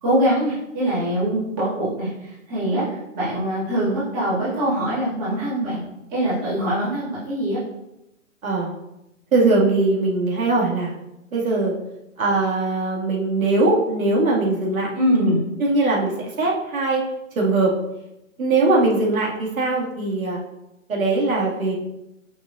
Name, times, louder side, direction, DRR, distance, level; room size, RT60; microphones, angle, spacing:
voice 1, 0.0-5.8 6.1-7.6 14.9-15.4, right 1 dB, 15° right, -12 dB, 2.0 m, -23 dB
voice 2, 9.3-10.9 11.3-11.7 12.2-14.9 15.2-15.3 15.6-16.1 16.4-17.0 17.4-17.7 18.4-20.4 20.9-21.7, right 3 dB, 85° right, -4 dB, 2.1 m, -20 dB
6.8 x 5.6 x 2.5 m, 0.90 s
hypercardioid pair, 175°, 40 cm